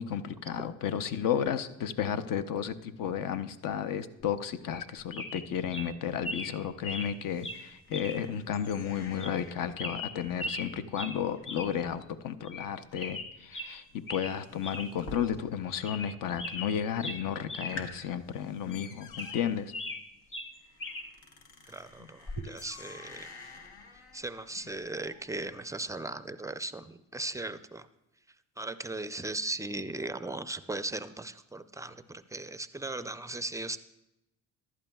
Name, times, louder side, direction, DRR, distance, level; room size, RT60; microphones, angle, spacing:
voice 1, 0.0-19.7, left 8 dB, 65° left, 11 dB, 0.7 m, -33 dB
sound 1, 4.7-4.9 5.1-5.4 5.7-5.9 6.2-6.5 6.8-7.1 7.4-7.6 7.9-8.2 8.5-8.6 9.2-9.5 9.8-10.7 10.9-11.2 11.5-11.7 12.0-12.1 12.5-12.7 12.9-13.7 14.1-14.3 14.6-14.9 15.3-15.4 15.7-16.1 16.4-17.7 18.0-18.1 18.7-20.0 20.3-21.1 22.3-22.5, left 2 dB, 35° left, 1.3 m, -39 dB
sound 2, 6.2-15.8 16.1-16.7 17.1-17.2 17.5-25.8, left 3 dB, 85° left, 1.2 m, -50 dB
voice 2, 21.7-23.3 24.1-27.9 28.6-33.8, right 2 dB, 10° right, 12 dB, 0.4 m, -37 dB
14.5 x 11.0 x 2.3 m, 0.89 s
supercardioid pair, 75°, 36 cm